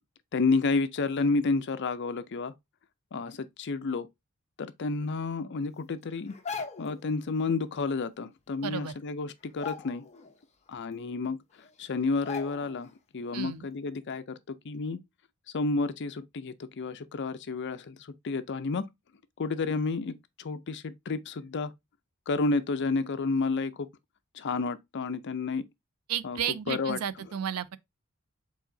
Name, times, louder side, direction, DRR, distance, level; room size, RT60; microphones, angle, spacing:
voice 1, 0.3-2.5 3.1-4.1 4.6-6.3 6.8-10.0 10.7-11.4 11.8-15.0 15.5-18.8 19.4-21.7 22.3-23.9 24.3-25.6 26.2-26.4 26.7-27.0, left 3 dB, 55° left, 0.5 m, -30 dB
sound 1, 6.3-7.0 8.5-8.6 8.9-9.1 9.5-10.3 10.7-10.8 11.6-11.7 12.3-12.9 13.3-13.4, left 5 dB, 30° left, 0.8 m, -39 dB
voice 2, 8.6-8.9 13.3-13.7 26.1-27.8, right 9 dB, 80° right, 0.4 m, -33 dB
4.8 x 4.0 x 2.6 m
head